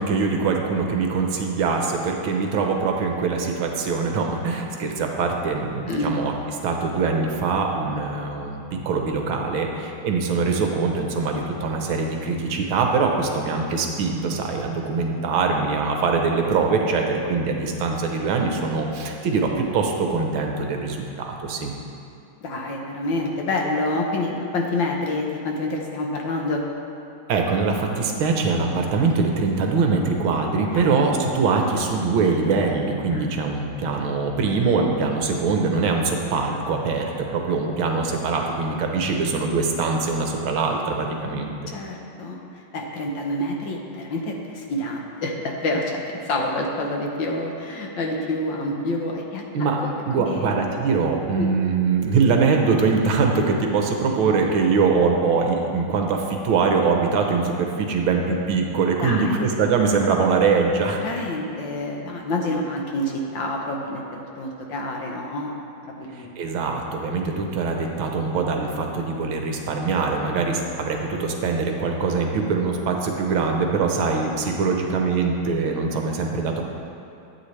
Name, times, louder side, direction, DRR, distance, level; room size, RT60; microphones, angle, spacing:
voice 1, 0.0-6.3 6.6-21.7 27.3-41.5 49.5-49.8 50.1-61.0 66.1-76.6, right 4 dB, 75° right, 2 dB, 1.7 m, -23 dB
voice 2, 22.4-26.7 30.7-30.9 33.1-33.3 41.7-49.5 50.2-50.5 51.3-51.5 59.0-59.5 61.0-65.5 65.9-66.3, left 2 dB, 65° left, 1 dB, 1.6 m, -27 dB
13.0 x 8.4 x 3.2 m, 2.6 s
omnidirectional pair, 2.3 m